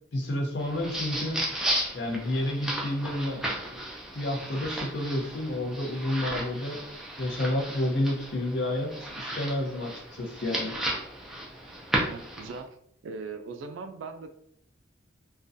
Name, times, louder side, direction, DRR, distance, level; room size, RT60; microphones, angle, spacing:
voice 1, 0.1-1.5 1.9-3.8 4.1-6.8 7.2-10.8, left 1 dB, 60° left, 1 dB, 0.6 m, -30 dB
sound 1, 0.6-12.6, right 1 dB, ahead, 0.3 m, -34 dB
voice 2, 12.0-12.8 13.0-14.3, right 4 dB, 85° right, 7 dB, 0.3 m, -39 dB
2.3 x 2.2 x 2.5 m, 0.69 s
head